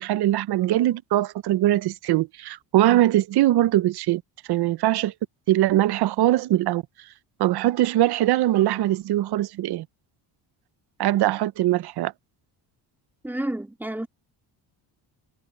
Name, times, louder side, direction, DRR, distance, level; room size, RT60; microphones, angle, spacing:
voice 1, 0.0-4.2 4.5-5.1 5.5-6.8 7.4-9.9 11.0-12.1, right 14 dB, 55° right, 0.7 m, -21 dB
voice 2, 13.2-14.1, right 1 dB, 5° right, 2.2 m, -30 dB
cardioid pair, 150°, 45 cm